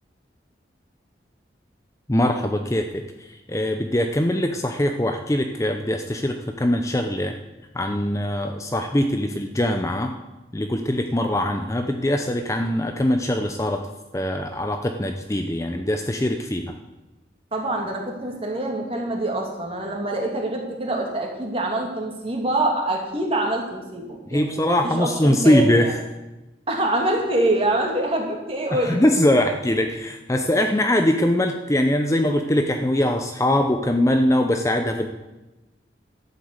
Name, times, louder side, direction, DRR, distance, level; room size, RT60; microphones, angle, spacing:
voice 1, 2.1-3.0 3.3-7.3 7.7-10.1 10.5-13.9 14.1-16.7 24.3-25.9 28.7-35.1, left 1 dB, 15° left, 5 dB, 0.6 m, -22 dB
voice 2, 17.5-25.9 26.7-29.1, right 1 dB, 30° right, 0 dB, 2.7 m, -25 dB
12.5 x 8.2 x 8.1 m, 1.1 s
head